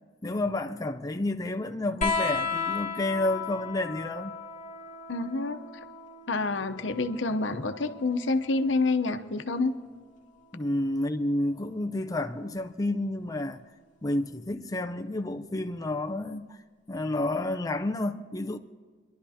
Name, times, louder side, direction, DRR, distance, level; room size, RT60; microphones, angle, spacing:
voice 1, 0.2-4.3 10.5-13.6 14.0-16.6 16.9-18.6, left 1 dB, 20° left, 0.5 m, -30 dB
sound 1, 2.0-9.1 10.4-11.3 12.6-12.7, left 5 dB, 45° left, 1.4 m, -35 dB
voice 2, 5.1-5.6 6.3-9.8, left 3 dB, 85° left, 0.9 m, -28 dB
29.0 x 11.5 x 2.8 m
head